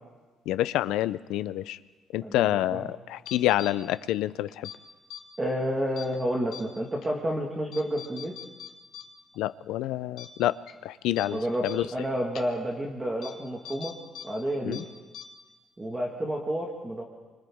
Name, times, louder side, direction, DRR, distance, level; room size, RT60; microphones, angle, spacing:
voice 1, 0.5-1.8 2.1-4.7 9.4-10.5 10.8-11.9 14.6-14.8, left 14 dB, 90° left, 15 dB, 0.6 m, -27 dB
voice 2, 2.2-2.8 5.4-8.3 11.3-13.9 14.2-14.8 15.8-17.0, equal, 10° right, -1 dB, 1.8 m, -30 dB
sound 1, 3.3-3.7 4.5-4.8 5.1-5.2 6.0-6.2 6.5-6.6 7.0-7.1 7.7-9.0 9.3-9.4 9.8-9.9 10.2-10.3 10.7-10.8 11.2-11.3 11.6-11.8 12.4-12.5 13.2-13.3 13.7-14.3 14.5-14.8 15.1-15.2, left 9 dB, 65° left, 2.0 m, -41 dB
29.5 x 25.0 x 3.6 m, 1.3 s
cardioid pair, 175°, 0 cm